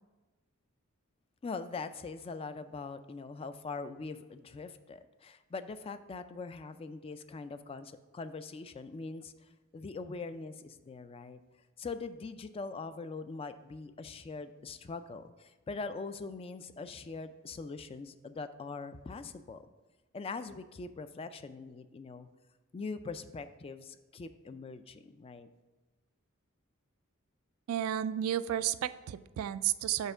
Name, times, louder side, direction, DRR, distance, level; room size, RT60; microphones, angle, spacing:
voice 1, 1.4-9.3 9.7-11.4 11.8-19.6 20.1-22.3 22.7-25.5, left 4 dB, 25° left, 11 dB, 0.3 m, -42 dB
voice 2, 27.7-30.1, right 11 dB, 80° right, 16 dB, 0.3 m, -32 dB
5.5 x 4.4 x 6.0 m, 1.2 s
head